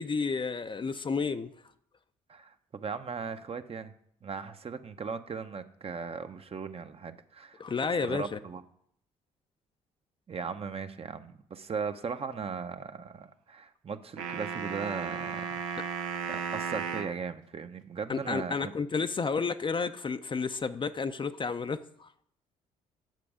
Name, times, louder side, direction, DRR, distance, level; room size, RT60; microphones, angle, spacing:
voice 1, 0.0-1.5 7.6-8.4 18.1-22.1, left 5 dB, 30° left, 0.6 m, -31 dB
voice 2, 2.3-3.9 4.2-7.6 8.1-8.6 10.3-18.7, right 5 dB, 35° right, 0.8 m, -38 dB
sound 1, 14.2-17.2, right 6 dB, 90° right, 0.7 m, -35 dB
9.3 x 6.8 x 4.9 m
hypercardioid pair, 50°, 17 cm